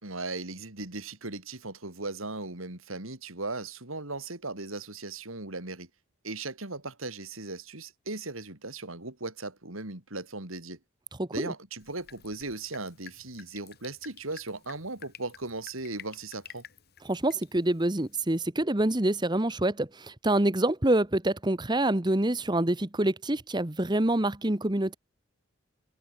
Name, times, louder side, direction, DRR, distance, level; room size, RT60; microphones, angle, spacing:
voice 1, 0.0-5.9 6.2-10.8 11.3-16.6, right 3 dB, 85° right, 4.4 m, -37 dB
voice 2, 11.2-11.5 17.0-25.0, right 1 dB, 20° right, 1.2 m, -26 dB
Drip, 11.8-18.4, left 9 dB, 50° left, 6.2 m, -52 dB
open air
head